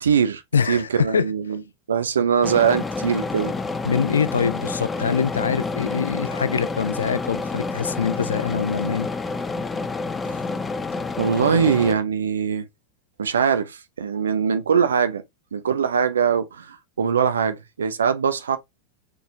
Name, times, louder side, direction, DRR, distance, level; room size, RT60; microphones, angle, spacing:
voice 1, 0.0-0.4 0.7-1.6 1.9-3.6 11.2-12.7 13.2-15.2 15.5-18.6, right 7 dB, 70° right, 0.7 m, -22 dB
voice 2, 0.5-1.3 3.8-9.1, left 6 dB, 70° left, 0.4 m, -24 dB
sound 1, 2.4-11.9, left 3 dB, 15° left, 0.4 m, -29 dB
4.0 x 3.4 x 3.6 m
figure-of-eight pair, 90°, 0 cm